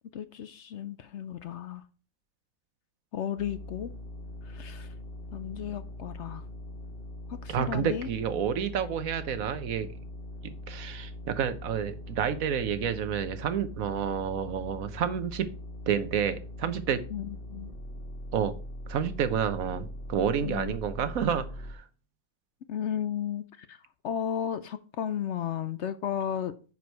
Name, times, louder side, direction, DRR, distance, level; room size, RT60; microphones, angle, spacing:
voice 1, 0.1-1.8 3.1-3.9 4.5-4.9 5.3-6.4 7.4-8.1 17.1-17.7 20.4-20.7 22.7-23.4 23.7-23.8 24.0-26.5, left 9 dB, 65° left, 0.8 m, -34 dB
sound 1, 3.4-21.7, left 1 dB, 40° left, 1.5 m, -42 dB
voice 2, 7.5-9.9 10.4-15.5 15.9-17.0 18.3-18.5 18.9-21.8, right 8 dB, 70° right, 1.2 m, -29 dB
9.5 x 4.8 x 4.6 m
omnidirectional pair, 1.5 m